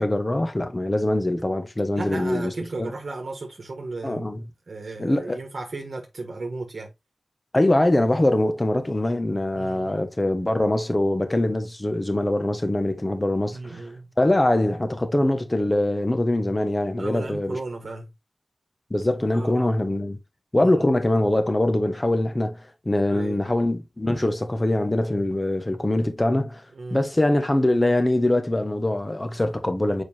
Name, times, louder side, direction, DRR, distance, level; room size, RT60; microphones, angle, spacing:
voice 1, 0.0-2.5 2.8-2.9 4.0-4.4 5.0-5.4 7.5-13.9 14.2-17.6 18.9-20.2 20.5-26.6 26.9-30.0, left 1 dB, 25° left, 1.3 m, -23 dB
voice 2, 1.9-4.3 4.7-6.9 9.5-10.0 13.5-14.1 17.0-18.1 19.3-19.7 20.6-20.7 23.1-23.4 26.7-27.0, right 3 dB, 65° right, 1.3 m, -34 dB
6.9 x 4.8 x 2.8 m
wide cardioid pair, 80°, 0 cm